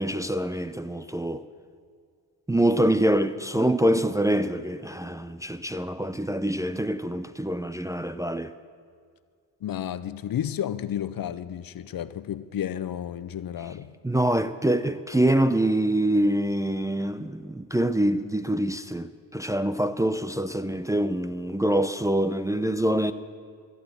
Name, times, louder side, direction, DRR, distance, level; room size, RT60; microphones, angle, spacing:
voice 1, 0.0-1.4 2.5-8.5 14.0-23.1, right 1 dB, 10° right, 0.5 m, -25 dB
voice 2, 9.6-13.9, left 10 dB, 55° left, 0.6 m, -32 dB
14.0 x 8.5 x 7.6 m
supercardioid pair, 45°, 43 cm